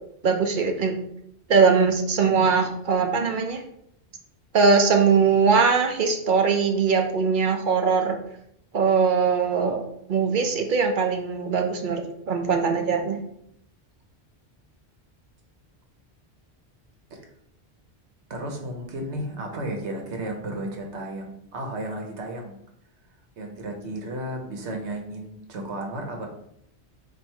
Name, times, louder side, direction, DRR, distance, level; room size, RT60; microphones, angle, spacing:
voice 1, 0.2-0.9 1.5-3.6 4.5-8.2 8.7-9.8 10.1-13.2, right 5 dB, 55° right, 4 dB, 0.7 m, -21 dB
voice 2, 18.3-22.5 23.4-26.3, right 1 dB, 80° right, 2 dB, 1.2 m, -33 dB
4.4 x 2.6 x 4.4 m, 0.72 s
omnidirectional pair, 1.1 m